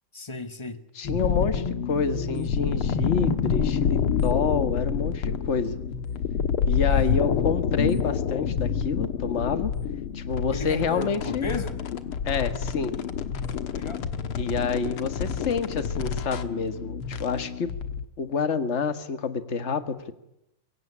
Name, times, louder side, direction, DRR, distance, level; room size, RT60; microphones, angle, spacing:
voice 1, 0.1-0.8 6.9-7.2 10.5-11.8 13.7-14.0, left 3 dB, 15° left, 9 dB, 1.3 m, -34 dB
voice 2, 0.9-5.8 6.7-9.7 10.1-11.5 12.2-13.0 14.4-17.7 18.2-20.1, left 5 dB, 35° left, 10 dB, 1.7 m, -28 dB
sound 1, 1.0-18.0, left 7 dB, 85° left, 2.3 m, -28 dB
24.5 x 23.0 x 9.9 m, 0.84 s
omnidirectional pair, 2.3 m